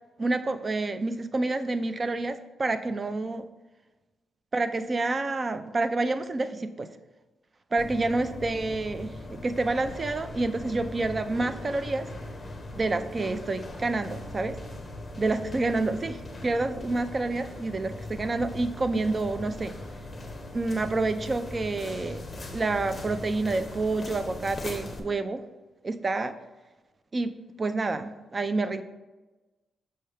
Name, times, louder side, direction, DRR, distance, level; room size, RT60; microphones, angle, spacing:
voice 1, 0.2-3.4 4.5-6.9 7.7-12.1 12.7-14.6 15.2-19.7 20.5-22.2 22.5-25.4 25.8-26.4 27.1-28.8, right 2 dB, 30° right, 10 dB, 0.4 m, -28 dB
sound 1, 7.8-25.0, left 1 dB, 20° left, 0.9 m, -40 dB
6.5 x 5.5 x 3.3 m, 1.2 s
cardioid pair, 120°, 0 cm